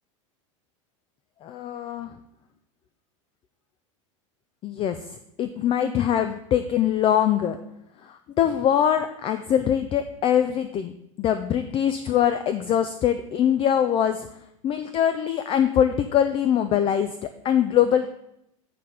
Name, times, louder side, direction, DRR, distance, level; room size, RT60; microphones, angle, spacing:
voice 1, 1.4-2.1 4.6-7.6 8.0-14.3 14.6-18.1, left 9 dB, 30° left, 9 dB, 0.5 m, -23 dB
9.1 x 4.2 x 4.9 m, 0.79 s
supercardioid pair, 110°, 17 cm